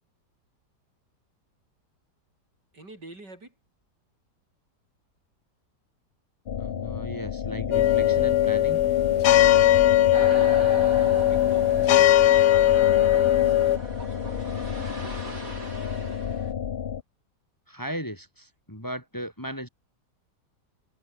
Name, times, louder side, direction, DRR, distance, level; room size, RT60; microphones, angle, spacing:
voice 1, 2.7-3.5 10.9-12.7 13.1-15.4, right 2 dB, 80° right, 7.9 m, -48 dB
sound 1, 6.5-17.0, left 8 dB, 50° left, 0.7 m, -32 dB
voice 2, 6.6-8.8 17.7-19.7, equal, 10° left, 4.1 m, -36 dB
sound 2, 7.7-13.8, left 13 dB, 75° left, 1.3 m, -19 dB
sound 3, 10.1-16.5, right 2 dB, 50° right, 6.5 m, -39 dB
omnidirectional pair, 1.8 m